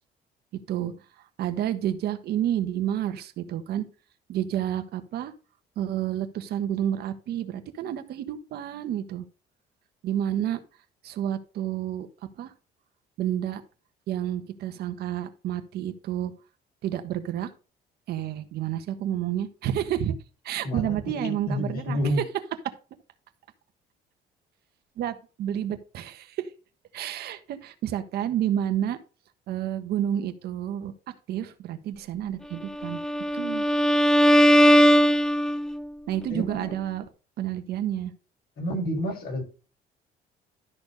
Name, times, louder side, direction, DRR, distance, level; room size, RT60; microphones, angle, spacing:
voice 1, 1.4-3.9 4.3-5.3 5.8-9.3 10.0-10.6 11.0-12.1 12.4-12.5 13.2-13.6 14.1-16.3 16.8-17.5 18.1-20.2 20.4-22.0 22.6-22.7 25.0-26.5 26.9-29.0 29.5-30.9 31.3-33.0 33.3-33.7 36.1-37.0 37.4-38.1, right 11 dB, 70° right, 1.4 m, -30 dB
voice 2, 20.6-22.2 36.3-36.8 38.6-39.4, equal, 60° left, 5.4 m, -29 dB
Bowed string instrument, 32.8-35.9, equal, 5° left, 0.4 m, -19 dB
12.5 x 4.4 x 5.3 m
cardioid pair, 110°, 17 cm